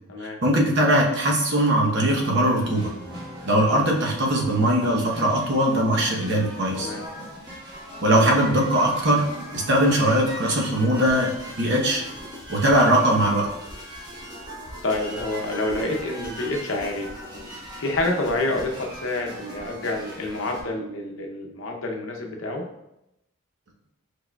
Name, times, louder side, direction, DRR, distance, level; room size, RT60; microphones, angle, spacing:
voice 1, 0.4-2.9 3.4-6.9 8.0-9.2 9.5-11.3 11.6-12.0 12.5-13.5, right 1 dB, 55° right, -1 dB, 0.9 m, -20 dB
sound 1, 1.4-20.6, equal, 20° right, 1.1 m, -39 dB
voice 2, 14.8-17.1 17.8-22.7, left 2 dB, 65° left, 1 dB, 0.7 m, -28 dB
4.7 x 4.7 x 2.3 m, 0.86 s
head